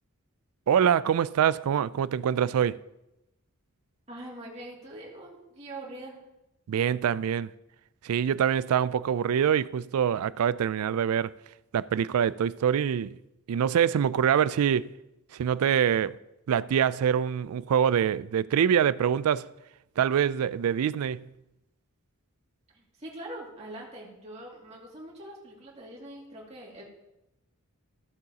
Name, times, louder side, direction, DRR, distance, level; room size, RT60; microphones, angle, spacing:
voice 1, 0.7-2.8 6.7-7.5 8.0-11.3 11.7-13.2 13.5-14.9 15.3-16.2 16.5-19.5 20.0-21.3, right 8 dB, 75° right, 0.3 m, -25 dB
voice 2, 4.1-6.2 22.7-26.8, right 1 dB, 30° right, 2.3 m, -43 dB
15.0 x 7.8 x 2.9 m
head